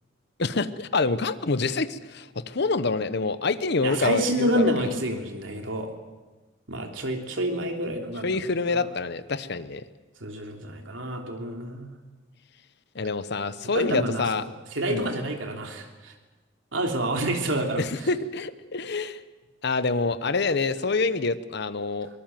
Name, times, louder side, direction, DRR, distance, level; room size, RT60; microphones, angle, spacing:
voice 1, 0.4-4.9 8.2-9.8 12.9-14.4 14.9-15.1 17.8-19.2 19.6-22.1, left 3 dB, 60° left, 13 dB, 1.0 m, -26 dB
voice 2, 3.8-5.9 6.7-8.3 8.7-8.8 10.2-11.9 13.7-16.1 16.7-17.8, right 1 dB, 90° right, 3 dB, 3.2 m, -28 dB
24.0 x 19.5 x 7.7 m, 1.2 s
head